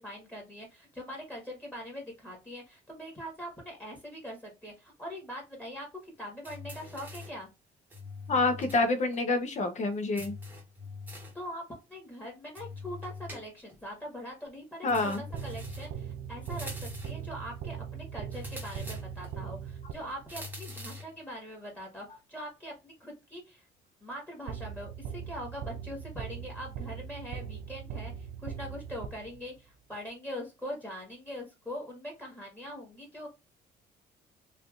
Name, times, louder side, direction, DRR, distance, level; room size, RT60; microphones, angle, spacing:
voice 1, 0.0-7.5 11.3-11.6 11.9-16.7 17.0-23.7 24.0-33.3, equal, 10° left, 1.5 m, -42 dB
sound 1, 6.4-7.4 7.9-8.9 9.1-9.2 10.2-11.4 12.6-13.8 14.9-16.0 16.5-17.3 18.3-19.4 20.3-21.2, left 2 dB, 10° right, 1.0 m, -43 dB
voice 2, 8.3-10.3 14.8-15.2, left 3 dB, 45° left, 0.8 m, -27 dB
sound 2, 15.3-20.4 24.5-29.7, right 8 dB, 70° right, 0.4 m, -40 dB
3.2 x 2.6 x 2.4 m
cardioid pair, 110°, 17 cm